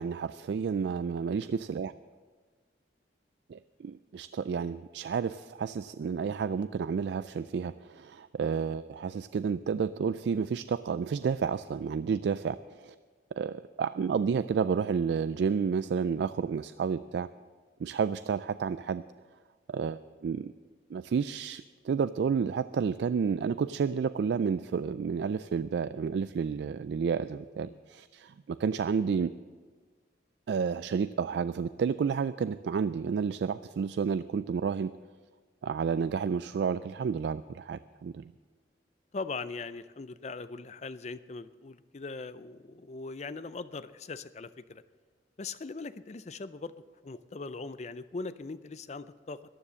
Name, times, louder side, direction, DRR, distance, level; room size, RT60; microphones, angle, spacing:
voice 1, 0.0-1.9 3.5-12.9 13.4-17.3 17.8-19.0 19.7-20.5 20.9-29.3 30.5-34.9 35.6-38.3, right 6 dB, 65° right, 13 dB, 0.3 m, -31 dB
voice 2, 39.1-44.8 45.4-46.8 47.0-49.5, left 3 dB, 35° left, 14 dB, 0.5 m, -40 dB
14.0 x 9.8 x 6.4 m, 1.5 s
head